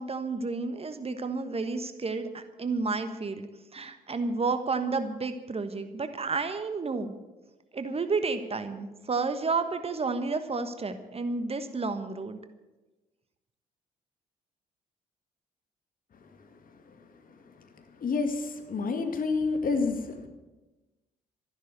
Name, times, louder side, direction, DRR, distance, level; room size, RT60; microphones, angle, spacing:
voice 1, 0.0-7.1 7.7-12.4, right 4 dB, 30° right, 9 dB, 1.3 m, -31 dB
voice 2, 18.0-20.3, left 4 dB, 45° left, 6 dB, 2.1 m, -28 dB
13.5 x 11.0 x 8.1 m, 1.1 s
figure-of-eight pair, 45°, 20 cm